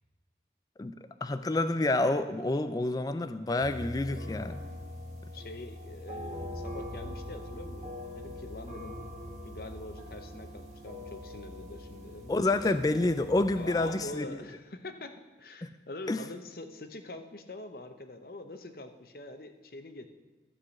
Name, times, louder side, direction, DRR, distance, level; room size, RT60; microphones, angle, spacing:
voice 1, 1.2-4.6 12.3-14.4 15.6-15.7 16.1-16.2, left 2 dB, 20° left, 11 dB, 0.3 m, -28 dB
sound 1, 3.6-14.0, left 1 dB, 35° right, 1.8 m, -42 dB
voice 2, 5.3-9.0 9.4-12.3 12.6-12.7 13.6-20.1, left 2 dB, 55° left, 8 dB, 0.8 m, -44 dB
13.0 x 4.9 x 7.1 m, 1.3 s
head